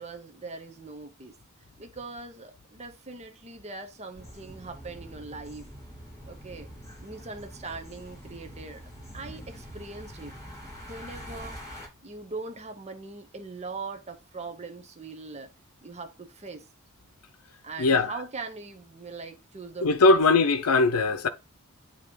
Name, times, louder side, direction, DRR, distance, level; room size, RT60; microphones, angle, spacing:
voice 1, 0.0-1.4 1.8-5.7 6.3-6.7 7.0-8.8 9.1-10.4 10.8-11.6 12.0-15.5 15.8-16.7 17.6-20.2, right 3 dB, 30° right, 0.8 m, -41 dB
sound 1, 4.1-11.9, equal, 15° left, 4.1 m, -44 dB
voice 2, 17.8-18.1 19.8-21.3, left 3 dB, 80° left, 0.6 m, -20 dB
8.6 x 2.9 x 4.5 m
head